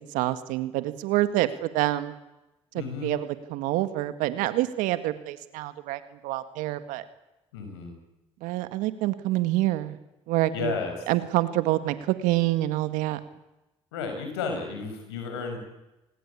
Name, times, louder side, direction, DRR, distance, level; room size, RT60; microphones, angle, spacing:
voice 1, 0.1-2.1 2.7-7.0 8.4-10.0 10.3-10.7 11.1-13.2, right 16 dB, 75° right, 12 dB, 1.8 m, -27 dB
voice 2, 2.7-3.2 7.5-8.0 10.5-11.1 13.9-15.6, left 5 dB, 90° left, 5 dB, 6.2 m, -32 dB
27.0 x 19.5 x 8.6 m, 0.98 s
hypercardioid pair, 55°, 13 cm